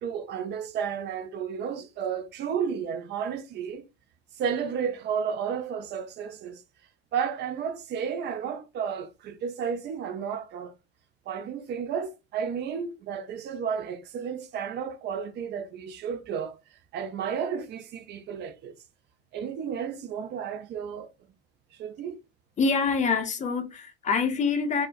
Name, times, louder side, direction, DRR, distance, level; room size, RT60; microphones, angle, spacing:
voice 1, 0.0-3.8 4.4-6.6 7.1-10.7 11.3-16.6 16.9-18.7 19.3-21.1 21.8-22.2, right 7 dB, 30° right, 0.5 m, -32 dB
voice 2, 22.6-24.9, left 5 dB, 20° left, 0.7 m, -25 dB
4.2 x 2.1 x 2.4 m
figure-of-eight pair, 65°, 33 cm